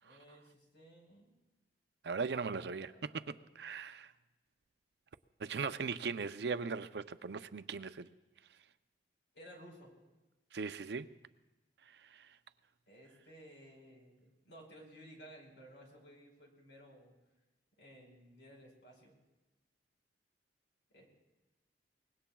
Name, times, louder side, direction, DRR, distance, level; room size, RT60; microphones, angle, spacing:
voice 1, 0.0-1.4 2.3-2.8 3.2-3.5 9.3-9.9 12.9-17.1 17.8-19.1 20.9-21.1, equal, 85° left, 4.4 m, -57 dB
voice 2, 2.0-4.1 5.4-8.1 10.5-11.1 12.0-12.3, right 5 dB, 65° right, 0.5 m, -39 dB
24.0 x 20.0 x 2.3 m
head